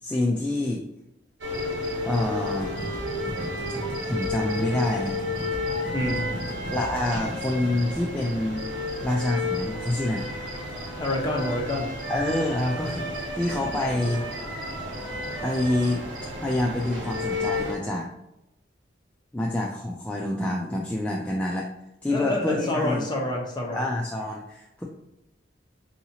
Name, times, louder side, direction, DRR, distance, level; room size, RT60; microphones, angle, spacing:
voice 1, 0.0-0.9 2.1-2.9 4.0-5.2 6.7-8.6 9.0-10.3 12.1-14.2 15.4-16.0 16.4-18.1 19.3-21.7 22.0-23.1 23.7-24.8, left 1 dB, 5° left, -3 dB, 0.3 m, -27 dB
sound 1, 1.4-17.7, left 1 dB, 85° right, 0.9 m, -32 dB
sound 2, 2.6-7.8, equal, 30° right, 1.4 m, -38 dB
sound 3, 5.7-10.4, left 4 dB, 70° left, 0.7 m, -44 dB
voice 2, 5.9-6.4 11.0-11.9 22.1-23.8, left 1 dB, 25° left, -1 dB, 0.8 m, -28 dB
4.7 x 2.8 x 2.8 m, 0.87 s
head